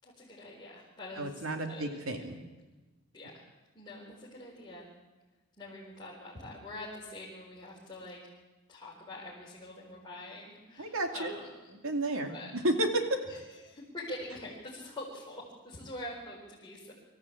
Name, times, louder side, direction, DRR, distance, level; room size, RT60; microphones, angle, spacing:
voice 1, 0.0-2.0 3.1-3.5 3.7-4.9 5.6-8.2 8.7-11.5 12.3-12.5 13.2-13.4 13.6-16.9, left 1 dB, 20° left, -7 dB, 4.5 m, -45 dB
voice 2, 1.2-2.5 10.8-11.3 11.8-13.2, right 1 dB, 75° right, 4 dB, 2.5 m, -32 dB
24.5 x 14.0 x 8.6 m, 1.2 s
head